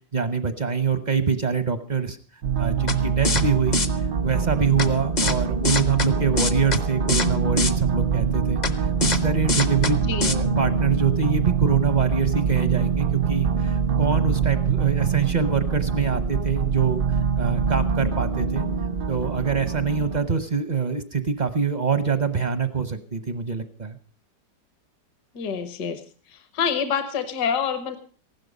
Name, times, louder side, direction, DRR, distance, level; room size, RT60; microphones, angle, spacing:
voice 1, 0.1-2.2 2.6-3.8 4.2-8.6 9.0-17.0 17.4-18.6 19.1-24.0, right 5 dB, 40° right, 10 dB, 0.6 m, -24 dB
sound 1, 2.4-20.2, right 6 dB, 90° right, 0.4 m, -24 dB
sound 2, 2.9-3.0 3.2-3.4 3.7-3.9 4.8-4.9 5.2-5.4 5.6-6.1 6.4-6.8 7.1-7.3 7.6-7.7 8.6-8.7 9.0-9.2 9.5-9.9 10.2-10.3, left 3 dB, 40° left, 0.6 m, -23 dB
voice 2, 10.0-10.3 25.3-26.0 26.3-28.0, left 7 dB, 65° left, 9 dB, 1.6 m, -27 dB
15.5 x 12.0 x 5.3 m, 0.41 s
omnidirectional pair, 2.0 m